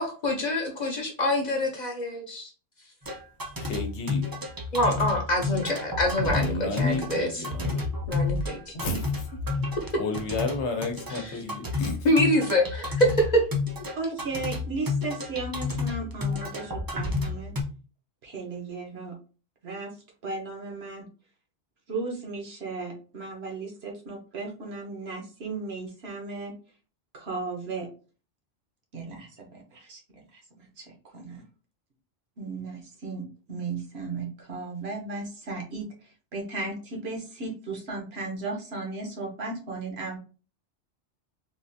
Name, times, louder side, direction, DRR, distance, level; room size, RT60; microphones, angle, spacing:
voice 1, 0.0-2.5 4.7-7.4 8.1-8.7 11.1-11.3 12.0-13.5, equal, 50° left, 0.6 m, -25 dB
sound 1, 3.0-17.6, left 3 dB, 30° right, 0.4 m, -31 dB
voice 2, 3.6-4.2 6.2-7.8 8.7-9.4 10.0-12.1, left 2 dB, 80° left, 1.0 m, -32 dB
voice 3, 13.9-17.5 18.2-19.2 19.6-19.9 20.2-21.1 21.9-26.5 27.1-27.9 28.9-30.0 30.3-31.4 32.4-40.2, right 3 dB, 65° right, 1.1 m, -35 dB
3.6 x 2.4 x 2.6 m
omnidirectional pair, 1.2 m